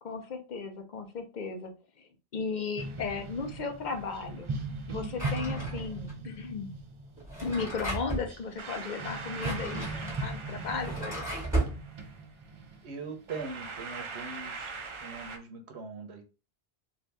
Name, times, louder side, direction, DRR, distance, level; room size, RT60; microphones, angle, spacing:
voice 1, 0.0-4.5 4.9-6.7 7.4-11.5, left 5 dB, 55° left, 5 dB, 0.7 m, -36 dB
sound 1, 2.8-15.4, right 3 dB, 50° right, 0.4 m, -39 dB
Drawer open or close, 5.1-6.1 7.2-8.3 9.1-11.8, right 2 dB, 5° right, 1.6 m, -34 dB
voice 2, 12.8-14.7 15.0-16.2, right 4 dB, 85° right, 4 dB, 1.0 m, -41 dB
2.7 x 2.5 x 3.3 m, 0.32 s
omnidirectional pair, 1.1 m